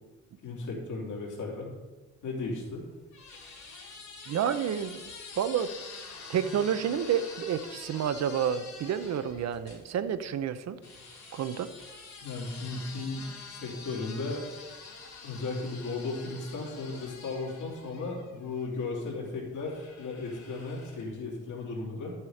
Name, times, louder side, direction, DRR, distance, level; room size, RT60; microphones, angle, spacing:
voice 1, 0.4-1.7 2.2-2.8 12.2-14.4 15.2-22.1, left 3 dB, 80° left, -2 dB, 3.0 m, -35 dB
sound 1, 2.5-9.8 10.8-18.7 19.6-21.2, left 4 dB, 65° left, 3.4 m, -47 dB
voice 2, 4.3-5.0 5.4-5.7 6.3-10.8 11.3-11.7, right 8 dB, 60° right, 12 dB, 0.7 m, -29 dB
10.5 x 7.4 x 5.0 m, 1.2 s
cardioid pair, 90°, 30 cm